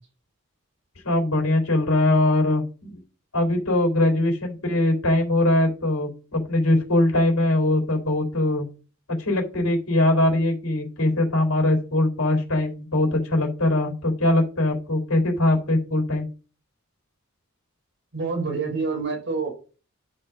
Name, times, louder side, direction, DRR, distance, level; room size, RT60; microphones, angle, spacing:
voice 1, 1.0-3.0 3.3-8.7 9.2-16.3, left 1 dB, 90° left, 2 dB, 3.9 m, -21 dB
voice 2, 18.1-19.5, right 4 dB, 60° right, 0 dB, 4.4 m, -27 dB
12.0 x 4.5 x 5.3 m, 0.36 s
head